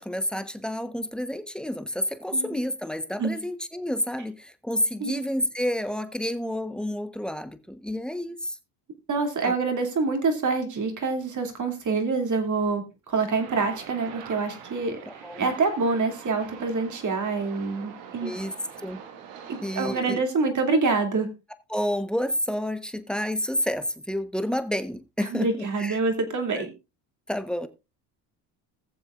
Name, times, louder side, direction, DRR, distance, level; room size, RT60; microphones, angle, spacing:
voice 1, 0.0-8.6 9.4-9.5 15.1-15.5 18.2-18.5 18.8-19.0 19.6-20.2 21.7-26.0 26.6-26.7 27.3-27.7, equal, ahead, 11 dB, 1.0 m, -29 dB
voice 2, 2.3-2.6 3.2-3.4 5.0-5.2 9.1-18.3 19.5-21.3 25.2-26.7, right 4 dB, 40° right, 5 dB, 2.7 m, -26 dB
sound 1, 13.3-20.0, right 7 dB, 80° right, 1.7 m, -44 dB
19.5 x 7.0 x 2.4 m, 0.26 s
supercardioid pair, 75°, 45 cm